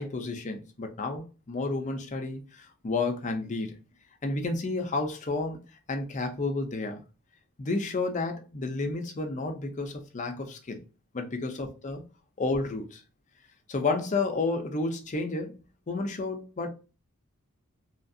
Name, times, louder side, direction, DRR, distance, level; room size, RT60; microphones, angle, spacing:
voice 1, 0.0-3.8 4.2-5.6 5.9-7.0 7.6-10.8 11.1-12.0 12.4-13.0 13.7-16.7, left 3 dB, 35° left, 0.5 m, -31 dB
2.8 x 2.4 x 2.6 m
head